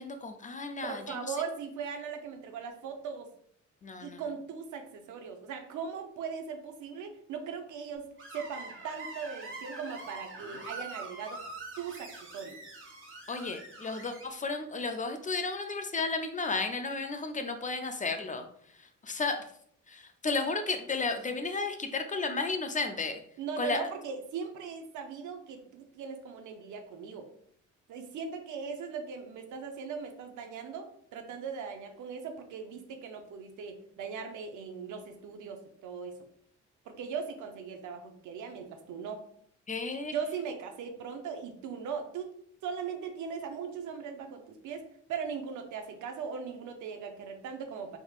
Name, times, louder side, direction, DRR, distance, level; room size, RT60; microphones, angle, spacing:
voice 1, 0.0-1.0 3.8-4.2 13.3-18.4 19.1-19.4 19.9-23.2 23.6-23.9 39.7-40.1, left 3 dB, 25° left, 7 dB, 0.4 m, -33 dB
voice 2, 0.9-3.3 4.0-8.0 8.3-11.4 11.8-12.6 23.4-27.3 27.9-36.2 36.9-39.2 40.1-42.3 42.6-44.8 45.1-48.0, right 6 dB, 75° right, 6 dB, 0.7 m, -39 dB
Screech, 8.2-14.2, right 2 dB, 40° right, 1.5 m, -44 dB
3.5 x 3.1 x 2.3 m, 0.65 s
cardioid pair, 90°, 30 cm